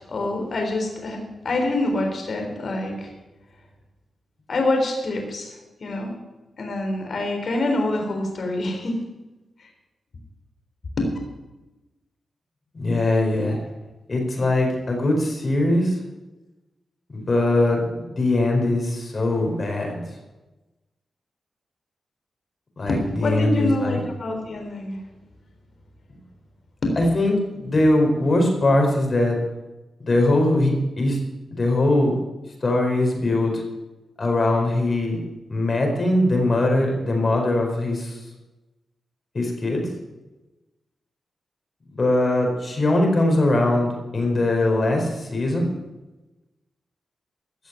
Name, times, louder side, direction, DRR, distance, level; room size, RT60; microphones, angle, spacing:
voice 1, 0.1-3.1 4.5-5.5 5.8-6.1 6.6-9.0 11.0-11.1 13.3-13.6 22.9-25.0 26.8-26.9, left 2 dB, 60° left, 2 dB, 3.8 m, -25 dB
voice 2, 12.7-13.6 14.1-16.0 17.1-20.0 22.8-24.0 26.9-29.4 30.0-31.2 31.6-32.1 32.6-33.6 34.2-35.2 35.5-38.2 39.3-39.9 41.9-45.7, left 1 dB, 45° left, 2 dB, 4.5 m, -21 dB
15.5 x 6.7 x 9.2 m, 1.1 s
cardioid pair, 65°, 0 cm